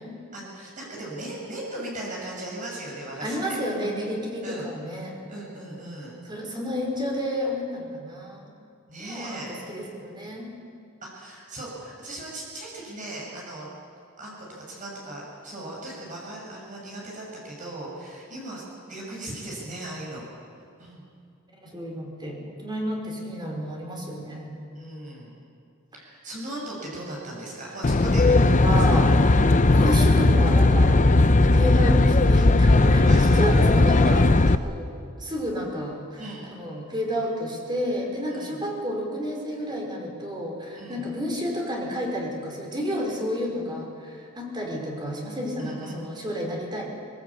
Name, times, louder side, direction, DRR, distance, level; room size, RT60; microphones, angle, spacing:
voice 1, 0.3-3.3 4.4-4.7 5.3-6.2 8.9-9.5 11.0-13.7 14.2-18.6 18.9-20.2 20.8-21.0 24.7-25.3 26.2-29.0 32.8-34.1 36.2-36.5 38.3-38.6 40.7-41.0 45.6-46.0, right 1 dB, 40° right, -3 dB, 6.1 m, -37 dB
voice 2, 3.2-5.2 6.2-8.5 9.1-10.5 21.6-24.5 25.9-26.0 28.6-30.9 31.5-34.9 35.2-46.8, equal, 20° right, -1 dB, 5.0 m, -31 dB
Aircraft, 27.8-34.6, left 2 dB, 35° left, 0.7 m, -17 dB
22.5 x 22.0 x 8.5 m, 2.3 s
head